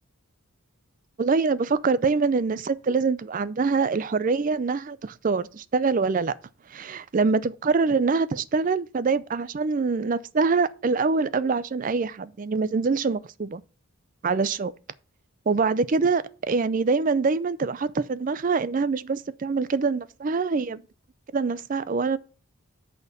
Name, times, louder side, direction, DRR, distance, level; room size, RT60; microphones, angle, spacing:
voice 1, 1.2-6.4 6.7-13.6 14.2-14.7 15.5-20.8 21.3-22.2, right 4 dB, 35° right, 0.4 m, -24 dB
8.0 x 4.3 x 6.7 m
head